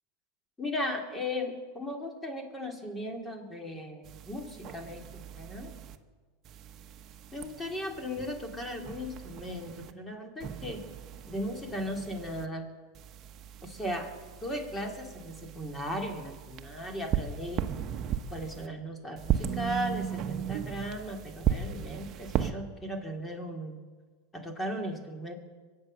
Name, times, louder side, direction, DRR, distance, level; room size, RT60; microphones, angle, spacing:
voice 1, 0.6-5.7 7.3-10.8 11.3-12.7 13.6-14.1 14.4-17.6 18.3-23.8 24.3-25.3, equal, 15° left, 3 dB, 3.0 m, -37 dB
sound 1, 4.0-6.0 6.4-9.9 10.4-12.5 12.9-18.7 19.2-22.5, right 9 dB, 40° right, 1.1 m, -36 dB
24.0 x 8.5 x 6.7 m, 1.4 s
hypercardioid pair, 110°, 0 cm